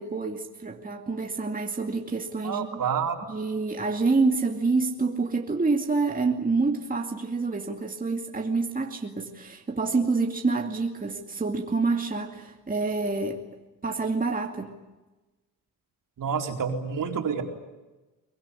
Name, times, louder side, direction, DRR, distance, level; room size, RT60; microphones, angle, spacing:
voice 1, 0.0-2.7 3.3-13.4 13.8-14.7, right 3 dB, 25° right, 2 dB, 2.5 m, -27 dB
voice 2, 2.4-3.3 16.2-17.4, right 6 dB, 60° right, 3 dB, 4.4 m, -28 dB
23.0 x 21.5 x 9.8 m, 1.1 s
cardioid pair, 90°, 36 cm